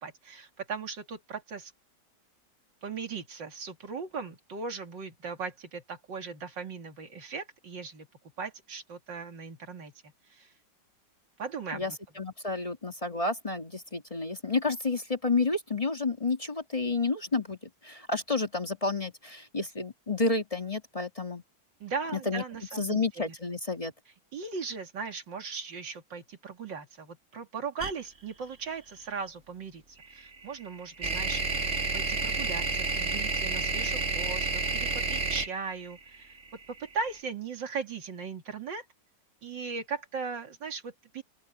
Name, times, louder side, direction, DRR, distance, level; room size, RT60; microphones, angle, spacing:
voice 1, 0.0-1.7 2.8-8.1 8.4-9.9 10.3-10.5 11.4-12.0 21.8-23.3 24.3-29.8 30.1-36.3 36.7-38.8 39.4-41.2, right 5 dB, 85° right, 3.2 m, -38 dB
voice 2, 11.7-21.4 22.1-22.4 22.8-23.9, left 3 dB, 20° left, 1.9 m, -30 dB
sound 1, 27.8-27.9 30.0-37.0, right 3 dB, 45° right, 2.6 m, -30 dB
open air
omnidirectional pair, 1.9 m